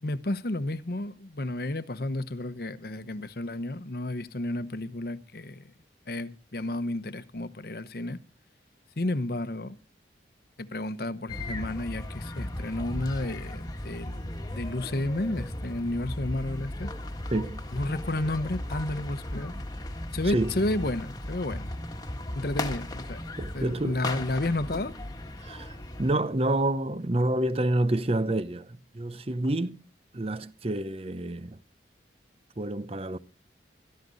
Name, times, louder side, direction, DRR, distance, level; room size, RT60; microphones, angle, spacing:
voice 1, 0.0-5.7 6.1-8.2 9.0-9.8 10.6-16.9 17.7-19.5 20.1-21.7 22.3-23.2 23.5-24.9, left 2 dB, 55° left, 0.9 m, -32 dB
sound 1, 11.3-26.1, left 1 dB, 20° left, 1.5 m, -36 dB
voice 2, 17.3-17.6 20.3-20.5 23.4-24.0 25.4-29.8 30.1-31.6 32.6-33.2, right 1 dB, 35° right, 0.7 m, -28 dB
17.0 x 14.0 x 4.0 m
head